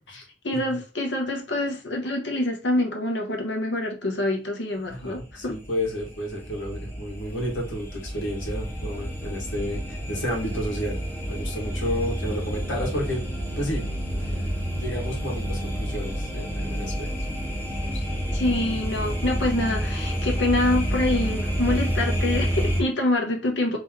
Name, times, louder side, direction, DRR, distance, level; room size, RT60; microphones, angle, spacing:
voice 1, 0.1-5.5 18.3-23.8, left 1 dB, 65° left, 1.0 m, -26 dB
voice 2, 4.9-11.0 11.2-13.3 13.6-13.9 14.3-17.1 17.8-18.2, equal, 85° left, 1.4 m, -31 dB
sound 1, 4.9-22.8, equal, 10° left, 0.8 m, -29 dB
3.1 x 3.0 x 3.5 m
head